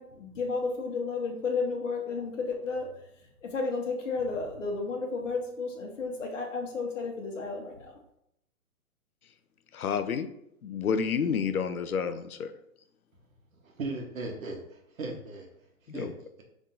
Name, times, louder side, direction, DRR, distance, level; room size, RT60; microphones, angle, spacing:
voice 1, 0.0-2.9 3.4-7.9, left 4 dB, 60° left, 1 dB, 1.3 m, -32 dB
voice 2, 9.7-10.3 10.6-12.5 15.9-16.1, left 6 dB, 85° left, 10 dB, 0.6 m, -29 dB
voice 3, 13.6-15.5 15.9-16.1, right 3 dB, 70° right, 1 dB, 1.3 m, -37 dB
5.4 x 3.6 x 2.6 m, 0.77 s
hypercardioid pair, 130°, 43 cm